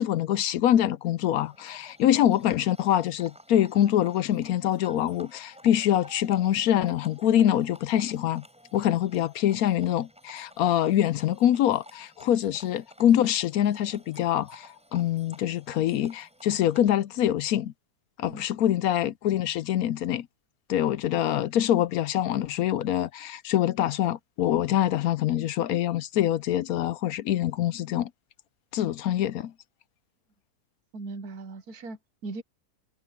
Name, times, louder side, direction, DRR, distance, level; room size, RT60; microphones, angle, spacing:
voice 1, 0.0-8.4 8.7-17.7 18.2-20.3 20.7-28.1 28.7-29.5, left 11 dB, 75° left, 1.0 m, -25 dB
Livestock farm animals working animals, 1.4-16.9, equal, 5° right, 7.3 m, -52 dB
voice 2, 30.9-32.4, right 3 dB, 75° right, 1.7 m, -39 dB
omnidirectional pair, 1.7 m